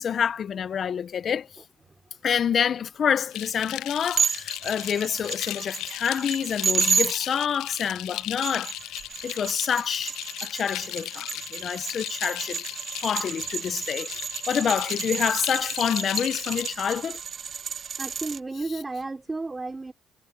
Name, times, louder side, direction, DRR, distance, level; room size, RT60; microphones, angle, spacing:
voice 1, 0.0-1.5 2.2-8.7 9.2-10.1 10.4-12.6 13.0-14.1 14.5-17.2, left 8 dB, 50° left, 0.8 m, -27 dB
voice 2, 1.6-2.1 5.7-5.8 18.0-19.9, right 3 dB, 20° right, 3.6 m, -34 dB
sound 1, 3.3-16.7, left 16 dB, 80° left, 0.3 m, -36 dB
sound 2, 4.2-7.1 8.2-18.4, right 6 dB, 45° right, 0.4 m, -31 dB
cardioid pair, 95°, 0 cm